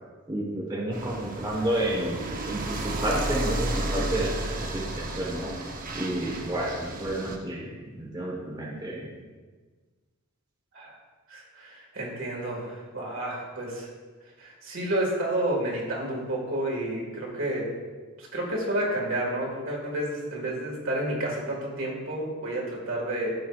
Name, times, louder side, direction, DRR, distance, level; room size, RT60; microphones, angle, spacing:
voice 1, 0.3-2.2 2.5-7.7 8.0-9.1, right 1 dB, 20° right, -4 dB, 1.1 m, -30 dB
sound 1, 0.9-7.4, right 1 dB, 40° right, 0.7 m, -33 dB
voice 2, 11.3-13.9 14.4-17.7 18.2-23.3, right 1 dB, 65° right, -3 dB, 1.8 m, -30 dB
13.5 x 4.7 x 2.4 m, 1.4 s
head